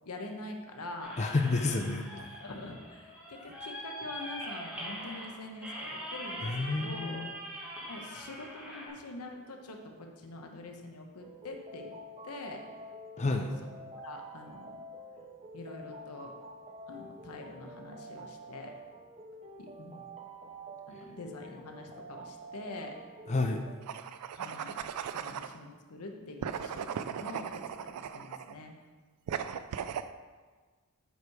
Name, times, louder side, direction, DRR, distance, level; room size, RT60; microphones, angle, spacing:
voice 1, 0.0-1.2 2.1-7.3 7.9-11.9 12.2-12.6 13.2-13.4 14.0-14.8 15.5-16.3 16.9-18.7 19.6-20.0 20.9-23.0 24.3-24.8 25.1-28.7, left 2 dB, 85° left, 3 dB, 0.9 m, -45 dB
sound 1, 1.0-8.9, equal, 5° right, 1.8 m, -42 dB
voice 2, 1.2-2.1 6.4-7.3 13.2-13.5 23.3-23.6, left 3 dB, 30° left, 4 dB, 0.4 m, -30 dB
sound 2, 11.2-23.7, right 1 dB, 30° right, 0.6 m, -48 dB
sound 3, 23.8-25.6 26.4-28.5 29.3-30.1, right 8 dB, 90° right, 0.3 m, -37 dB
8.0 x 4.7 x 4.8 m, 1.4 s
head